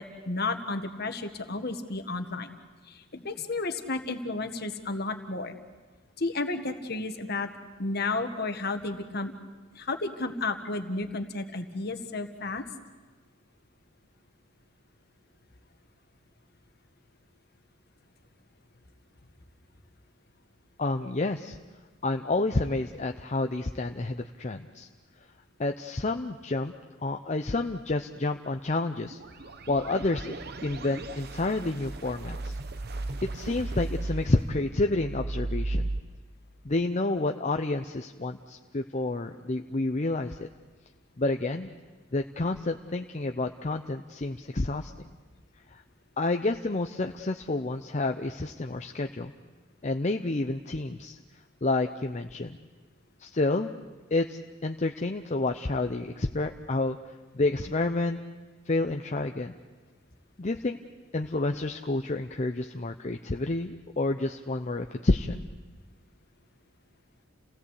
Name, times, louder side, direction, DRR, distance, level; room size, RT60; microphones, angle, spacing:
voice 1, 0.0-2.6 2.9-5.5 6.2-7.5 7.8-9.3 9.7-12.6, left 3 dB, 50° left, 7 dB, 1.7 m, -32 dB
voice 2, 20.8-21.6 22.0-24.9 25.6-26.7 27.0-32.6 33.2-35.9 36.6-40.5 41.2-41.7 42.1-45.1 45.7-45.8 46.2-49.3 49.8-51.2 51.6-52.6 53.2-53.7 54.1-58.2 58.7-59.5 60.4-60.8 61.1-65.4, left 2 dB, 35° left, 5 dB, 0.7 m, -29 dB
sound 1, 29.1-36.0, right 2 dB, 50° right, 0.9 m, -36 dB
29.5 x 17.5 x 8.3 m, 1.3 s
head